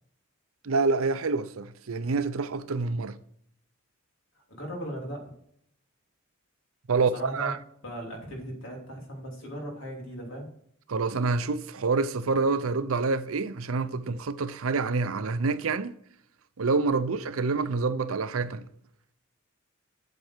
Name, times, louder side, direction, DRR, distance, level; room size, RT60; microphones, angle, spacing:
voice 1, 0.6-3.2 6.9-7.6 10.9-15.9 16.6-18.6, right 4 dB, 80° right, 0.6 m, -27 dB
voice 2, 4.5-5.3 7.1-7.5 7.8-10.5, equal, 65° left, 3.1 m, -38 dB
8.2 x 7.6 x 4.5 m
head